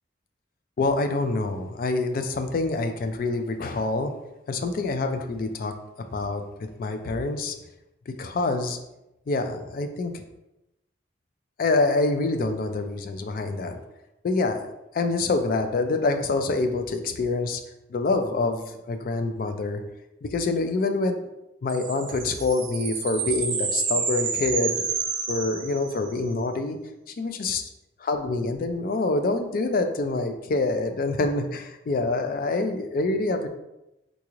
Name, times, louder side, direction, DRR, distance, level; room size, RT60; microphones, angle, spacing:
voice 1, 0.8-4.1 4.5-5.7 6.1-6.4 6.8-7.6 8.1-8.8 9.3-10.2 11.6-13.8 14.2-14.6 14.9-17.6 17.9-19.8 20.2-21.2 21.6-24.8 25.3-26.8 27.2-27.7 28.0-33.5, left 3 dB, 50° left, 7 dB, 0.3 m, -26 dB
sound 1, 21.7-26.3, right 5 dB, 75° right, 0.7 m, -29 dB
3.8 x 2.4 x 3.0 m, 0.92 s
head